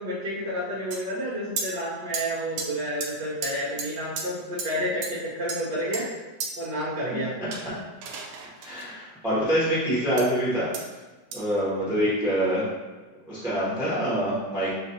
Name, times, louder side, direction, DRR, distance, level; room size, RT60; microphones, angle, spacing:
voice 1, 0.0-6.1 6.6-7.5 11.9-12.0, equal, 70° right, -9 dB, 1.5 m, -30 dB
sound 1, 0.9-1.0 1.6-1.7 2.1-2.2 2.6-2.7 3.0-3.1 3.4-3.5 3.8-3.9 4.2-4.3 4.6-4.7 5.0-5.1 5.5-6.0 6.4-6.5 7.5-8.9 10.2-10.3 10.7-10.8 11.3-11.4, right 4 dB, 85° right, 1.4 m, -33 dB
voice 2, 8.6-10.7 11.3-12.7 13.3-14.7, equal, ahead, -10 dB, 0.9 m, -25 dB
6.1 x 2.5 x 2.7 m, 1.2 s
omnidirectional pair, 2.1 m